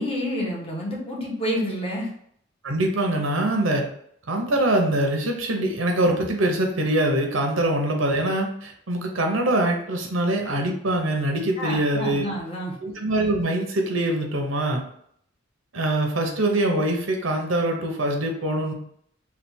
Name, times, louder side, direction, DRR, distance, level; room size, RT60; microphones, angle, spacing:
voice 1, 0.0-2.1 11.6-12.8, equal, 30° left, -4 dB, 1.1 m, -28 dB
voice 2, 2.6-3.8 4.3-12.3 12.8-14.8 15.7-18.7, right 1 dB, 85° right, 2 dB, 0.9 m, -23 dB
3.4 x 2.4 x 4.3 m, 0.67 s
head